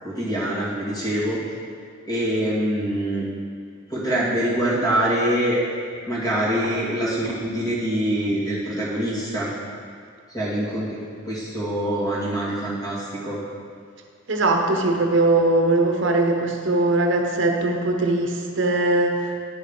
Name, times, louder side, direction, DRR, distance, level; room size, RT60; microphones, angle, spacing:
voice 1, 0.0-1.4 2.1-3.2 3.9-5.6 6.1-9.5 10.3-13.4, right 1 dB, 20° left, -8 dB, 2.0 m, -24 dB
voice 2, 14.3-19.5, right 2 dB, 60° right, 2 dB, 0.9 m, -21 dB
10.5 x 6.2 x 3.7 m, 2.2 s
head